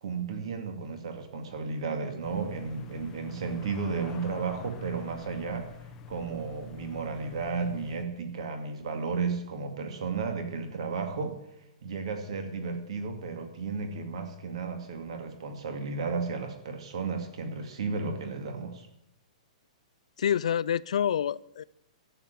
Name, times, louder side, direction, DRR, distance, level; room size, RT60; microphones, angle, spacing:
voice 1, 0.0-5.7 6.1-11.4 11.8-18.9, right 4 dB, 50° right, 6 dB, 2.3 m, -33 dB
sound 1, 2.2-8.0, left 5 dB, 15° left, 0.7 m, -46 dB
voice 2, 20.2-21.6, left 9 dB, 60° left, 19 dB, 0.4 m, -27 dB
12.5 x 7.3 x 9.4 m, 0.84 s
hypercardioid pair, 180°, 4 cm